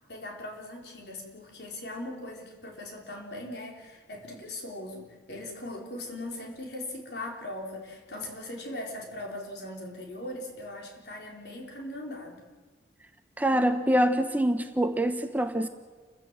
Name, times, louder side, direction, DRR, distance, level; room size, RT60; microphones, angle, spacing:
voice 1, 0.1-12.4, left 1 dB, 65° left, 4.6 m, -39 dB
voice 2, 13.4-15.7, right 1 dB, 10° right, 0.9 m, -25 dB
29.5 x 15.5 x 7.8 m
head